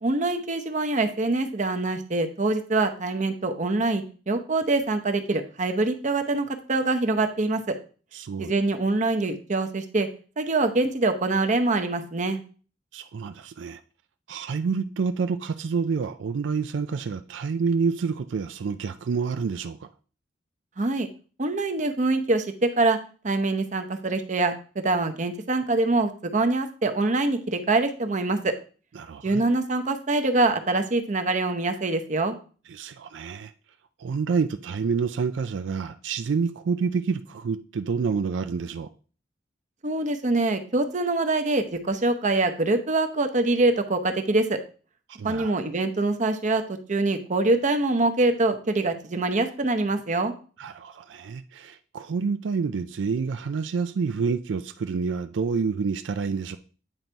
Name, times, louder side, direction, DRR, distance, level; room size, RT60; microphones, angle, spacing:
voice 1, 0.0-7.8 8.4-10.1 10.4-12.4 20.8-21.1 21.4-23.0 23.2-28.5 29.2-32.3 39.8-44.6 45.2-50.3, right 2 dB, 45° right, 0.8 m, -24 dB
voice 2, 8.1-8.5 12.9-13.8 14.3-19.9 29.0-29.4 32.7-33.5 34.0-38.9 45.2-45.6 50.6-56.6, right 5 dB, 85° right, 0.4 m, -28 dB
9.0 x 4.0 x 4.5 m
head